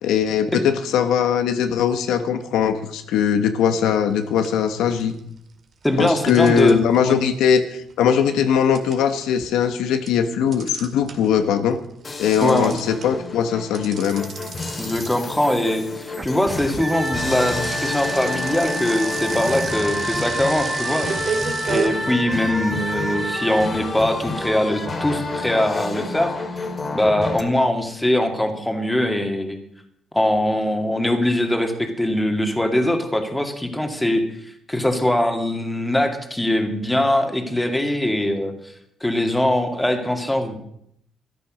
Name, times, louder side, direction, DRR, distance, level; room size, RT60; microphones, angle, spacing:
voice 1, 0.0-5.1 6.0-11.8 12.2-14.3, left 8 dB, 90° left, 8 dB, 1.2 m, -20 dB
sound 1, 3.9-4.1 4.4-5.4 6.1-11.4 11.7-21.9, right 5 dB, 55° right, 2.2 m, -32 dB
voice 2, 5.8-7.2 12.4-12.8 14.8-21.1 21.6-26.3 26.9-29.6 30.1-34.2 34.7-38.5 39.0-40.5, left 1 dB, 10° left, 5 dB, 2.3 m, -22 dB
sound 2, 12.0-27.4, left 3 dB, 35° left, 2.2 m, -30 dB
sound 3, 16.1-23.7, right 2 dB, 25° right, 1.1 m, -29 dB
13.5 x 10.5 x 6.3 m, 0.74 s
cardioid pair, 90°, 0 cm